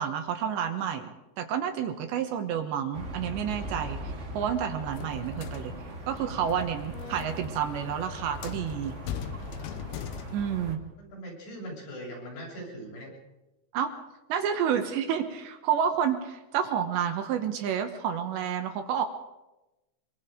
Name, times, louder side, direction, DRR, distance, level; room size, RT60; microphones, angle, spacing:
voice 1, 0.0-5.7 6.1-9.0 10.3-10.8 13.7-13.9 14.3-19.0, right 8 dB, 70° right, 6 dB, 3.2 m, -30 dB
sound 1, 2.9-10.8, right 1 dB, 55° right, 0.7 m, -40 dB
sound 2, 4.9-10.7, left 9 dB, 75° left, 2.4 m, -41 dB
voice 2, 11.0-13.1, equal, 60° left, -2 dB, 8.6 m, -41 dB
24.5 x 23.0 x 5.1 m, 1.0 s
omnidirectional pair, 5.5 m